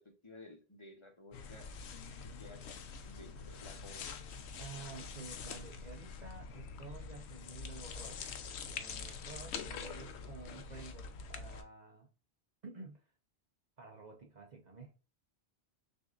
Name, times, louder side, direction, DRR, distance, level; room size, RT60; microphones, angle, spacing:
voice 1, 0.0-1.7 2.4-4.0, left 2 dB, 30° left, 0.8 m, -55 dB
sound 1, 1.3-11.6, left 5 dB, 85° left, 0.9 m, -45 dB
voice 2, 4.6-8.3 8.6-12.1 12.6-13.0 13.8-14.9, right 4 dB, 45° right, 0.8 m, -51 dB
6.2 x 2.6 x 2.4 m
omnidirectional pair, 1.1 m